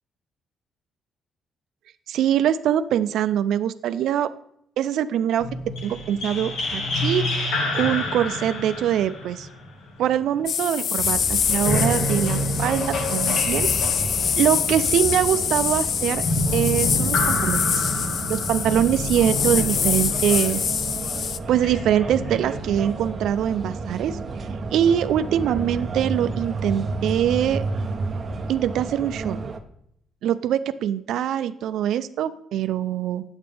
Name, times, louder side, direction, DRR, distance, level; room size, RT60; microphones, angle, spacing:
voice 1, 2.1-4.3 4.8-5.5 5.8-7.2 7.7-9.5 10.0-13.7 14.4-16.3 16.5-17.8 18.3-20.8 21.5-24.2 24.7-27.6 28.5-29.4 30.2-33.2, right 10 dB, 70° right, 12 dB, 0.4 m, -23 dB
sound 1, 5.4-10.4 11.5-22.9, left 1 dB, 75° left, 1.7 m, -29 dB
sound 2, 10.5-21.4, left 7 dB, 45° left, 0.3 m, -25 dB
sound 3, 11.0-29.6, right 3 dB, 25° right, 0.6 m, -32 dB
9.3 x 8.0 x 3.4 m, 0.72 s
cardioid pair, 175°, 0 cm